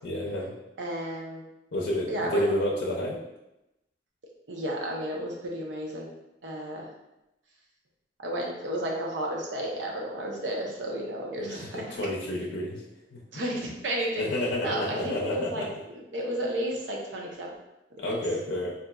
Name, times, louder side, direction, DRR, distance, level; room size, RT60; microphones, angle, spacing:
voice 1, 0.0-0.5 1.7-3.2 11.5-12.8 13.1-13.2 14.2-15.7 18.0-18.7, left 1 dB, 75° left, -3 dB, 0.5 m, -30 dB
voice 2, 0.8-1.4 2.1-2.4 4.5-6.1 6.4-6.9 8.2-12.0 13.3-14.2 14.6-15.7 15.9-17.5 18.1-18.2, right 1 dB, 90° right, -1 dB, 0.7 m, -32 dB
3.9 x 2.5 x 2.2 m, 0.91 s
head